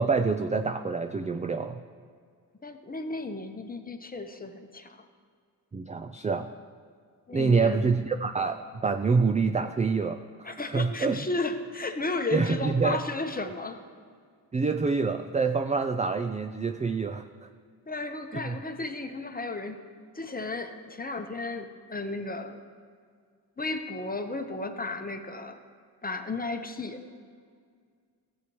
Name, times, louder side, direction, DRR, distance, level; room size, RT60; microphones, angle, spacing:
voice 1, 0.0-1.8 5.7-6.5 7.3-11.2 12.3-13.0 14.5-17.3 18.3-18.6, right 4 dB, 20° right, 7 dB, 0.3 m, -26 dB
voice 2, 2.6-5.0 7.3-7.8 10.4-13.8 17.9-19.8 20.1-22.6 23.6-25.6 26.0-27.1, left 3 dB, 20° left, 7 dB, 0.9 m, -34 dB
14.0 x 7.7 x 3.1 m, 2.1 s
supercardioid pair, 55°, 44 cm